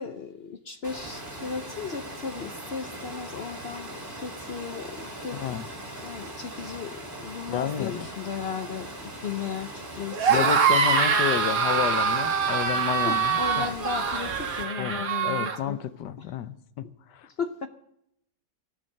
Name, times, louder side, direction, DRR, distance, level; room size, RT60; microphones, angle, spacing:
voice 1, 0.0-5.4 6.0-10.5 13.0-15.8 16.2-16.4 17.4-17.7, left 6 dB, 55° left, 0.7 m, -35 dB
Water, 0.8-14.6, right 1 dB, 30° right, 3.3 m, -40 dB
voice 2, 7.5-8.1 10.3-13.7 14.8-17.3, left 10 dB, 75° left, 1.4 m, -31 dB
sound 1, 10.1-15.6, right 5 dB, 55° right, 1.7 m, -24 dB
14.5 x 11.5 x 6.6 m
omnidirectional pair, 1.9 m